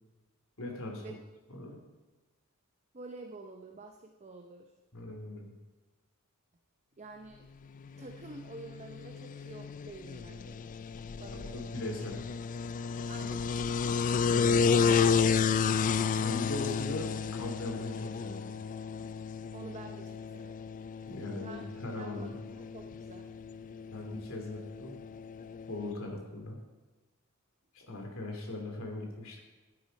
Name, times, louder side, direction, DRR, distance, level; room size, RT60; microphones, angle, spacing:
voice 1, 0.6-1.2 1.5-1.8 4.9-5.5 11.3-12.2 14.2-15.1 16.2-18.5 21.1-22.4 23.9-24.9 25.7-26.6 27.7-29.4, left 2 dB, 65° left, 1 dB, 2.9 m, -40 dB
voice 2, 2.9-4.7 7.0-7.5 7.9-10.7 11.2-11.9 13.1-13.6 19.5-20.7 21.4-23.4, right 3 dB, 30° right, 4 dB, 0.7 m, -48 dB
sound 1, 7.9-25.9, left 6 dB, 35° left, 0.3 m, -32 dB
12.0 x 9.7 x 5.3 m, 1.2 s
head